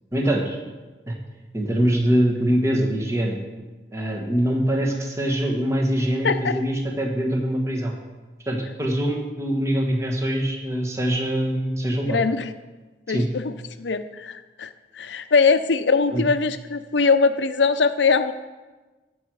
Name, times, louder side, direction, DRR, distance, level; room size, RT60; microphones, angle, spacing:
voice 1, 0.1-0.6 1.1-1.2 1.5-3.4 3.9-7.9 8.4-12.2 13.1-13.3 16.1-16.2, right 1 dB, 15° right, 0 dB, 1.2 m, -23 dB
voice 2, 6.2-6.6 12.1-12.5 13.1-13.5 13.8-18.3, left 4 dB, 90° left, 10 dB, 0.6 m, -21 dB
15.0 x 6.2 x 4.8 m, 1.2 s
head